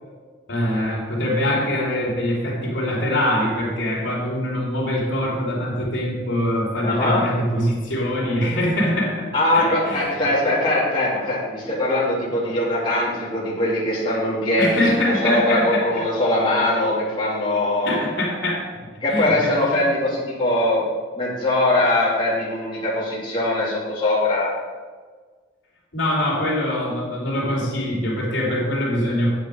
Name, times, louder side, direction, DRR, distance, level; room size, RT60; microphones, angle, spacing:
voice 1, 0.5-10.3 14.6-16.0 17.8-18.7 19.1-19.9 25.9-29.3, left 1 dB, 80° left, -4 dB, 3.1 m, -23 dB
voice 2, 6.8-7.2 9.3-14.8 15.2-18.0 19.0-20.8 21.1-24.5, left 1 dB, 25° left, -7 dB, 2.9 m, -21 dB
9.1 x 8.0 x 5.2 m, 1.5 s
head